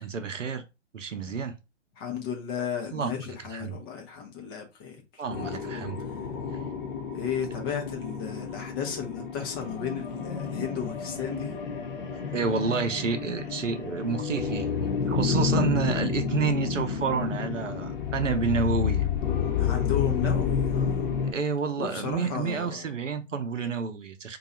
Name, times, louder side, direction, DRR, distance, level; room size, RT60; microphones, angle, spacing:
voice 1, 0.0-0.6 0.9-1.6 2.9-3.2 3.5-3.8 5.2-6.0 12.1-19.1 21.3-24.4, right 5 dB, 80° right, 0.7 m, -29 dB
voice 2, 2.0-6.2 7.1-11.6 19.6-21.1 21.8-22.9, left 7 dB, 20° left, 0.5 m, -34 dB
sound 1, 5.3-21.3, left 6 dB, 45° left, 0.9 m, -30 dB
2.7 x 2.3 x 4.1 m
figure-of-eight pair, 120°, 37 cm